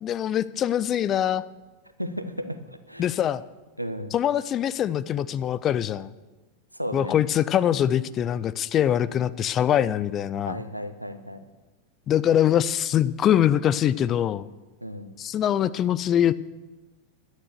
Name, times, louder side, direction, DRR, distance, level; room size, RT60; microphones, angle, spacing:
voice 1, 0.0-1.4 3.0-3.4 4.1-6.1 6.9-10.6 12.1-14.5 15.2-16.3, left 10 dB, 30° left, 16 dB, 0.4 m, -23 dB
voice 2, 2.0-2.6 2.9-3.1 3.8-4.1 6.7-7.2 10.5-11.4 14.8-15.1, equal, 90° right, 10 dB, 0.9 m, -34 dB
11.5 x 9.5 x 6.9 m, 1.2 s
figure-of-eight pair, 90°, 0 cm